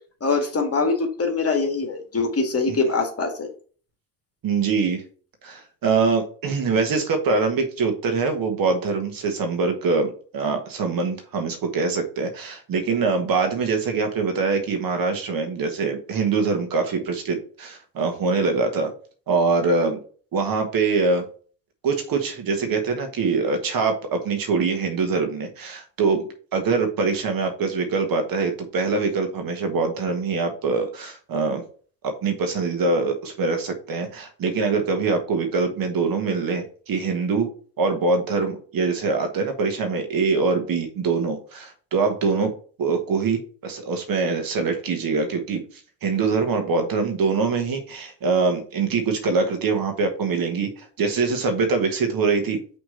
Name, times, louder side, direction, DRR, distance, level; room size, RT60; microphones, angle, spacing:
voice 1, 0.2-3.5, left 3 dB, 30° left, 4 dB, 1.9 m, -23 dB
voice 2, 4.4-5.0 5.4-18.9 19.3-20.0 20.3-21.2 21.8-31.6 32.0-37.5 37.8-42.5 42.8-45.6 46.0-52.6, right 4 dB, 45° right, 5 dB, 1.5 m, -24 dB
5.9 x 3.5 x 5.6 m, 0.43 s
hypercardioid pair, 60°, 49 cm